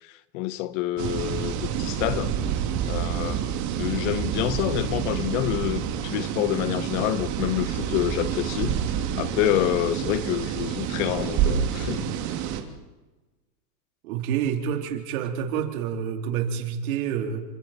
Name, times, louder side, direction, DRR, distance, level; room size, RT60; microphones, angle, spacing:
voice 1, 0.0-2.4 2.8-8.8 9.2-12.1, left 13 dB, 50° left, 1.4 m, -28 dB
sound 1, 1.0-12.6, right 9 dB, 35° right, 2.7 m, -28 dB
voice 2, 14.0-17.4, right 8 dB, 60° right, 4.1 m, -28 dB
29.5 x 25.5 x 4.5 m
hypercardioid pair, 130°, 47 cm